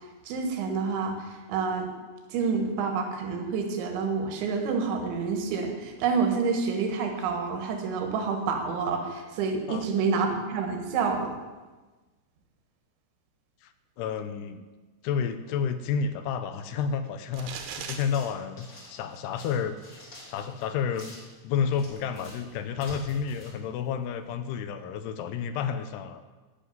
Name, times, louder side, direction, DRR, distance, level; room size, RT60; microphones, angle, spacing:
voice 1, 0.3-1.9 2.3-11.4, right 5 dB, 90° right, 4 dB, 4.0 m, -28 dB
voice 2, 13.6-14.6 15.0-19.8 20.3-26.2, left 7 dB, 80° left, 10 dB, 2.7 m, -31 dB
sound 1, 17.3-18.0, right 7 dB, 65° right, 2.5 m, -37 dB
sound 2, 17.9-24.4, equal, 30° left, 3.0 m, -49 dB
13.5 x 6.7 x 9.3 m, 1.2 s
omnidirectional pair, 5.2 m